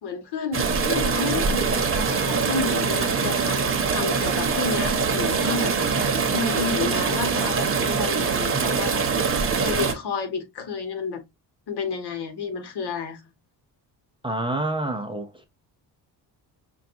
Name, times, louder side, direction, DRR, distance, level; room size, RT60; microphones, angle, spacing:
voice 1, 0.0-5.7 6.0-9.0 9.6-11.2 11.7-13.2, left 5 dB, 70° left, 1.4 m, -31 dB
sound 1, 0.5-9.9, right 5 dB, 30° right, 0.9 m, -23 dB
voice 2, 14.2-15.5, right 2 dB, 15° right, 0.5 m, -28 dB
5.6 x 2.3 x 2.5 m
cardioid pair, 155°, 40 cm